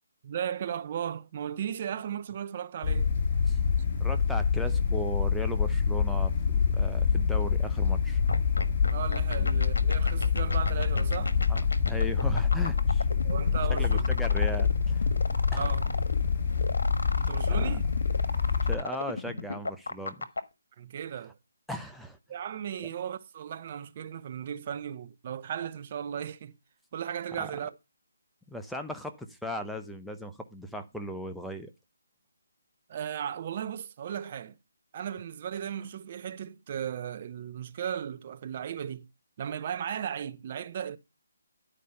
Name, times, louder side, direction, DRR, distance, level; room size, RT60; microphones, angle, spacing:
voice 1, 0.2-3.1 8.9-11.3 13.2-14.1 15.5-15.8 17.2-17.8 20.8-21.3 22.3-26.5 26.9-27.7 32.9-34.5 34.9-39.1 39.4-41.0, right 9 dB, 35° right, 0.8 m, -36 dB
sound 1, 2.8-18.8, left 6 dB, 30° left, 2.3 m, -26 dB
voice 2, 4.0-8.2 9.4-9.5 11.5-11.6 11.9-13.1 13.7-15.1 15.5-15.7 17.5-17.8 18.6-20.3 21.7-22.2 27.3-27.5 28.5-31.7, equal, ahead, 0.7 m, -37 dB
sound 2, 8.3-20.4, left 3 dB, 75° left, 1.4 m, -34 dB
11.0 x 5.0 x 5.5 m
figure-of-eight pair, 150°, 0 cm